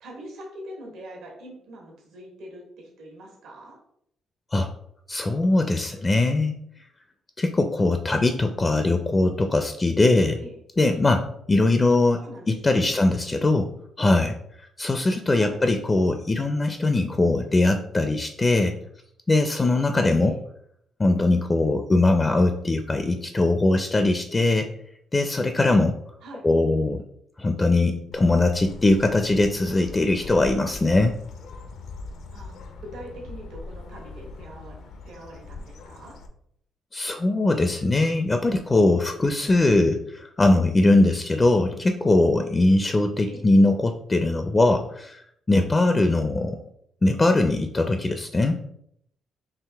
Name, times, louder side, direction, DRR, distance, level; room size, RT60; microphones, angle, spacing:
voice 1, 0.0-3.8 10.4-10.6 12.2-12.9 15.3-15.6 20.2-20.4 26.2-26.5 32.3-34.7 35.0-36.2 43.3-43.5, right 1 dB, 85° right, -1 dB, 1.3 m, -43 dB
voice 2, 5.1-6.6 7.4-10.4 10.8-13.7 14.0-14.4 14.8-18.8 19.3-20.3 21.0-24.7 25.1-26.0 26.4-27.0 27.4-31.2 36.9-45.2 45.5-46.6 47.0-48.6, left 2 dB, 25° left, 7 dB, 0.4 m, -21 dB
Bird, 28.1-36.3, left 3 dB, 75° left, 0.5 m, -41 dB
4.7 x 2.8 x 3.3 m, 0.71 s
cardioid pair, 90°, 0 cm